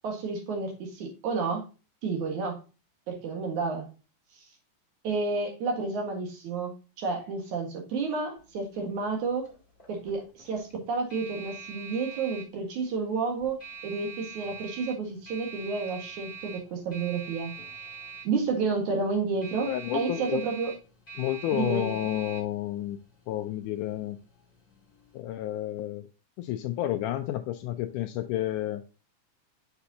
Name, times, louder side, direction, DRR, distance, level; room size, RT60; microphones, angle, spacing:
voice 1, 0.0-1.6 2.0-2.6 3.1-3.9 5.0-6.7 7.0-9.5 9.9-17.5 18.2-20.7 21.5-22.0, right 4 dB, 65° right, 2 dB, 2.9 m, -30 dB
sound 1, 8.4-25.2, right 6 dB, 20° left, 1.3 m, -45 dB
voice 2, 19.7-20.4 21.2-23.0 23.3-24.2 25.1-26.1 26.4-28.8, left 13 dB, 80° left, 8 dB, 1.9 m, -30 dB
6.9 x 5.5 x 2.7 m, 0.32 s
omnidirectional pair, 3.9 m